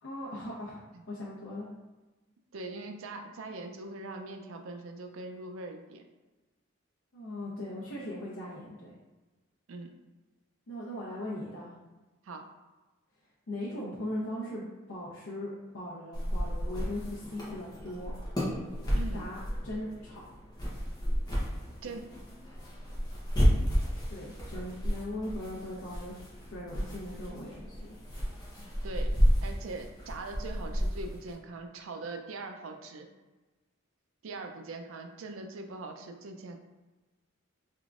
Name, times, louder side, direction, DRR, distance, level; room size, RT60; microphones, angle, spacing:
voice 1, 0.0-1.7 7.1-8.9 10.7-11.7 13.5-18.1 19.1-20.2 24.1-26.2 26.5-27.7, left 1 dB, 75° left, -7 dB, 0.7 m, -39 dB
voice 2, 2.5-6.0 9.7-9.9 12.2-12.5 18.9-19.3 21.8-22.1 28.8-29.1 29.4-33.1 34.2-36.6, right 3 dB, 80° right, 4 dB, 0.4 m, -41 dB
sound 1, 16.1-31.3, equal, 20° left, 0.8 m, -32 dB
3.6 x 3.4 x 2.4 m, 1.2 s
head